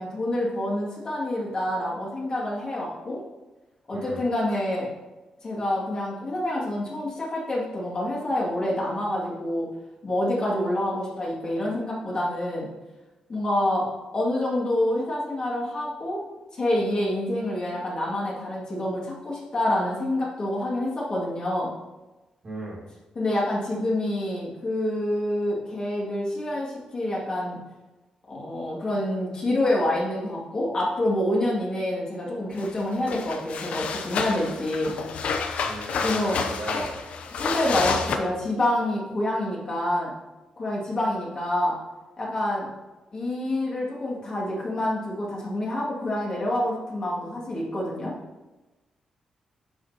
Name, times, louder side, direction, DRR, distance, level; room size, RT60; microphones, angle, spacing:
voice 1, 0.0-3.2 3.9-4.9 5.4-9.7 10.0-12.7 13.3-16.2 16.5-21.7 23.1-27.6 28.3-34.9 36.0-36.8 37.3-40.1 40.6-41.8 42.2-42.7 43.1-48.2, left 1 dB, 35° left, -5 dB, 2.3 m, -27 dB
voice 2, 22.4-22.9 35.7-36.8, right 1 dB, 40° right, -6 dB, 2.0 m, -37 dB
sound 1, 32.6-32.7 33.1-38.2, left 5 dB, 75° left, 0.7 m, -29 dB
9.5 x 6.2 x 2.9 m, 1.1 s
wide cardioid pair, 130°, 2 cm